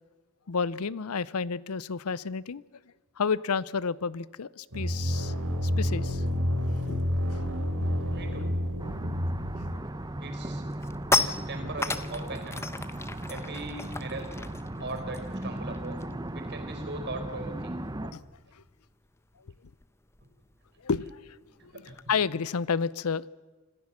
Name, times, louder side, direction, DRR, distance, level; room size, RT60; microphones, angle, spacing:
voice 1, 0.5-2.6 3.2-5.3 5.6-6.2 6.5-7.4 7.8-8.0 9.6-9.7 14.7-14.8 18.0-18.2 18.5-18.6 20.8-21.4 22.1-23.3, left 5 dB, 75° left, 0.6 m, -31 dB
sound 1, 4.7-9.7, left 1 dB, 90° right, 3.8 m, -29 dB
voice 2, 8.1-8.6 10.2-10.6 11.0-12.6 13.3-14.3 14.8-16.1 16.3-17.8 21.6-21.9, right 2 dB, 50° right, 4.2 m, -39 dB
sound 2, 8.8-18.1, right 1 dB, 20° right, 0.9 m, -37 dB
sound 3, 9.7-10.0 10.4-16.3 16.6-16.8 17.1-22.1, left 3 dB, 10° left, 0.8 m, -35 dB
26.0 x 15.0 x 7.3 m
head